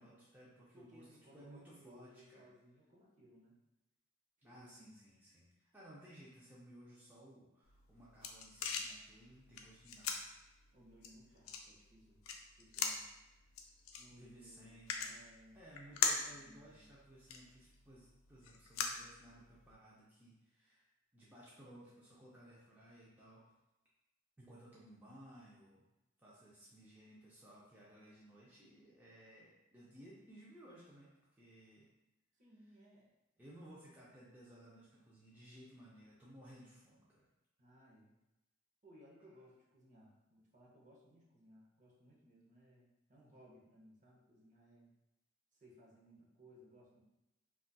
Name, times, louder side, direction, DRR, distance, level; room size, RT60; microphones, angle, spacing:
voice 1, 0.0-1.1 1.3-2.5 4.4-10.3 14.1-15.1 15.5-23.5 24.4-25.8 26.2-31.9 33.4-37.2, right 1 dB, 10° right, -7 dB, 0.5 m, -58 dB
voice 2, 0.7-3.6 4.4-5.1 10.7-12.2 12.6-13.1 14.0-15.6 16.4-16.9 32.4-33.1 37.6-38.1 38.8-44.9 45.5-47.0, equal, 40° right, -4 dB, 0.7 m, -62 dB
sound 1, 7.7-19.7, left 5 dB, 80° left, 0.4 m, -43 dB
3.9 x 2.3 x 2.2 m, 0.96 s
head